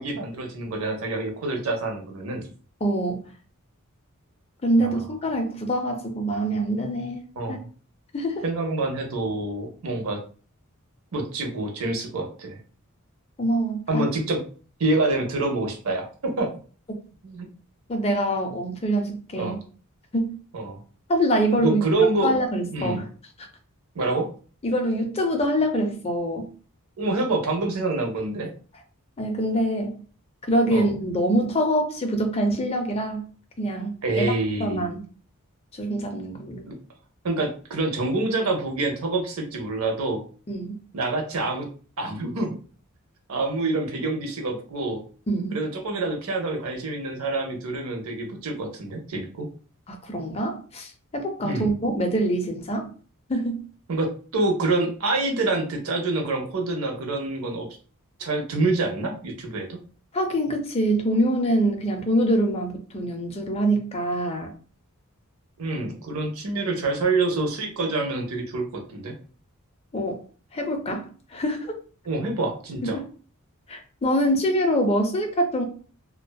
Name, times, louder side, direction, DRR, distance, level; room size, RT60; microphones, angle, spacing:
voice 1, 0.0-2.5 4.8-5.0 7.4-7.7 8.4-10.2 11.1-12.6 13.9-14.4 14.8-16.5 17.2-17.5 19.4-19.6 20.5-20.8 21.6-22.3 22.6-23.0 23.9-24.3 27.0-28.5 30.7-30.9 34.0-34.9 36.6-36.8 37.2-40.2 40.9-41.7 42.0-42.5 43.3-45.0 45.5-49.5 51.4-51.7 53.9-57.7 58.2-59.8 65.6-69.1 72.1-73.0, right 2 dB, 70° right, 3 dB, 0.6 m, -26 dB
voice 2, 2.8-3.3 4.6-7.2 7.5-7.6 8.1-8.4 13.4-14.1 17.9-19.6 20.1-20.4 21.1-21.8 22.2-23.0 24.6-26.5 29.2-30.0 30.4-33.3 33.6-34.3 34.6-35.0 35.7-36.7 40.5-40.8 45.3-45.6 49.9-52.9 53.3-53.6 60.1-64.5 69.9-70.2 70.5-71.7 72.8-73.0 73.7-75.6, right 1 dB, 25° left, 4 dB, 0.4 m, -25 dB
2.6 x 2.2 x 2.2 m, 0.40 s
head